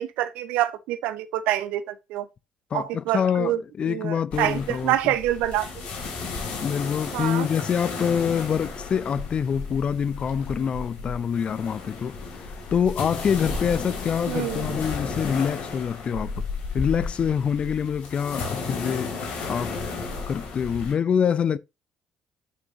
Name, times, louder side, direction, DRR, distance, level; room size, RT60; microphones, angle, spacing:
voice 1, 0.0-2.3 2.7-3.6 3.9-5.7 7.1-7.5 14.3-14.7, right 13 dB, 70° right, 0.9 m, -26 dB
voice 2, 2.7-5.1 6.6-12.2 12.7-16.4 16.7-19.2 19.5-19.8 20.3-21.6, left 7 dB, 50° left, 0.6 m, -25 dB
sound 1, 4.3-20.9, left 4 dB, 65° left, 2.9 m, -33 dB
9.5 x 6.2 x 2.8 m
hypercardioid pair, 50°, 3 cm